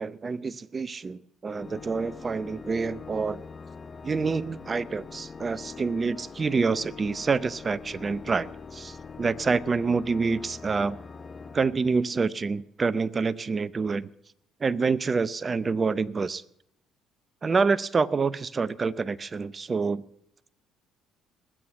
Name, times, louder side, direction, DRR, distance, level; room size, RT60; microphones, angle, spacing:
voice 1, 0.0-3.4 4.0-11.0 11.5-14.1 14.6-16.4 17.4-20.0, right 4 dB, 35° right, 19 dB, 0.6 m, -27 dB
Organ, 1.5-12.4, left 5 dB, 35° left, 0.8 m, -43 dB
20.0 x 7.8 x 7.0 m, 0.75 s
supercardioid pair, 70°, 0 cm